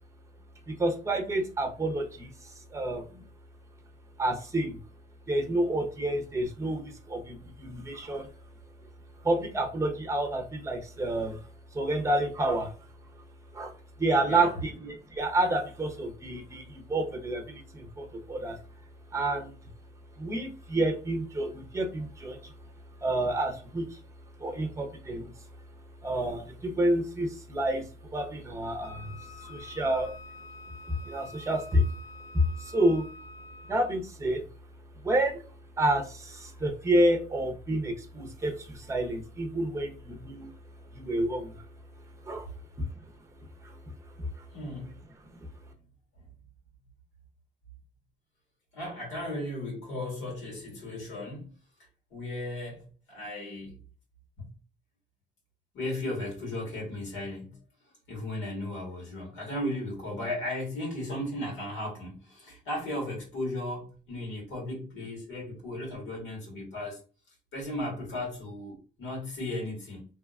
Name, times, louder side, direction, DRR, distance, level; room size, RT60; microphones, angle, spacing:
voice 1, 0.7-3.2 4.2-4.8 5.3-8.3 9.2-11.4 11.7-12.7 13.5-13.7 14.0-18.6 19.1-19.5 20.2-22.5 23.0-24.0 24.4-25.3 26.0-29.1 29.4-30.1 30.9-31.8 32.3-33.1 33.7-34.4 35.0-35.4 35.8-40.5 40.9-41.5 42.2-42.5 42.8-42.9 43.6-43.8 44.2-44.3, right 1 dB, 15° right, 0.6 m, -29 dB
voice 2, 14.2-14.5 44.5-45.0 48.7-51.5 52.1-53.8 54.4-54.5 55.7-57.6 58.1-67.0 67.5-70.1, left 1 dB, 90° left, 1.4 m, -36 dB
Wind instrument woodwind instrument, 28.8-34.0, left 2 dB, 60° left, 0.9 m, -48 dB
2.7 x 2.2 x 2.3 m
cardioid pair, 90°, 20 cm